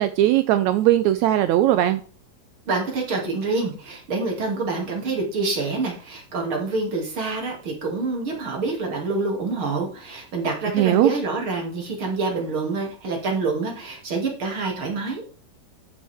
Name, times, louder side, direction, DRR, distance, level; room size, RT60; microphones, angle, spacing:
voice 1, 0.0-2.0 10.7-11.1, right 13 dB, 90° right, 11 dB, 1.6 m, -19 dB
voice 2, 2.7-15.2, right 3 dB, 40° right, 0 dB, 3.1 m, -26 dB
13.0 x 7.0 x 3.5 m, 0.39 s
omnidirectional pair, 3.9 m